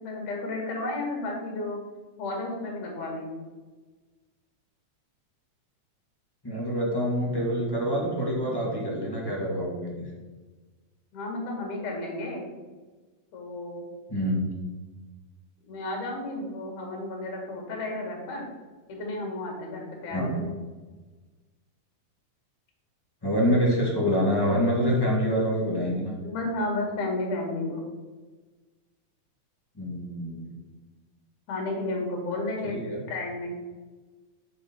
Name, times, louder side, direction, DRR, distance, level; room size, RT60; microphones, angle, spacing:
voice 1, 0.0-1.8 2.2-3.3 11.1-12.5 13.3-13.9 15.6-18.4 18.9-20.5 26.2-27.8 31.5-33.5, left 2 dB, 80° left, 0 dB, 3.3 m, -32 dB
voice 2, 6.4-10.1 14.1-14.5 20.1-20.4 23.2-26.1 29.8-30.5 32.6-33.0, equal, 15° left, -4 dB, 1.0 m, -26 dB
7.7 x 4.3 x 5.9 m, 1.3 s
omnidirectional pair, 3.5 m